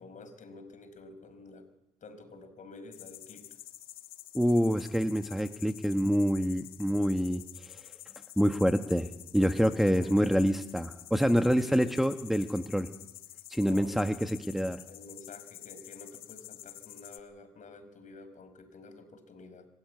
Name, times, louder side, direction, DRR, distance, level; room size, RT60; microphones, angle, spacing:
voice 1, 0.0-1.7 2.0-3.5 9.4-10.2 11.5-11.9 13.6-13.9 14.8-19.7, left 3 dB, 55° left, 8 dB, 5.1 m, -49 dB
sound 1, 2.9-17.2, left 14 dB, 80° left, 1.5 m, -49 dB
voice 2, 4.3-7.8 8.4-12.9 13.5-14.8, equal, ahead, 7 dB, 1.4 m, -27 dB
25.5 x 13.5 x 9.5 m, 0.87 s
supercardioid pair, 60°, 15 cm